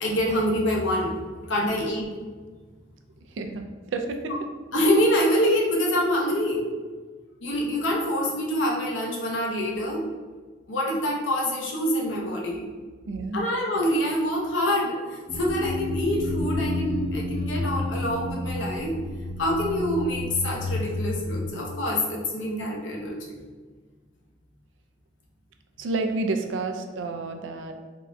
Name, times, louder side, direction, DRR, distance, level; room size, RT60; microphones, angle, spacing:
voice 1, 0.0-1.1 1.5-2.0 4.7-6.7 7.4-10.0 10.7-12.7 13.3-18.9 19.4-23.4, equal, 85° left, -2 dB, 0.7 m, -25 dB
voice 2, 3.3-4.3 13.1-13.5 25.8-27.8, right 3 dB, 80° right, 5 dB, 0.3 m, -30 dB
sound 1, 15.3-21.5, left 2 dB, 10° right, 0.4 m, -30 dB
3.6 x 2.1 x 2.6 m, 1.5 s
head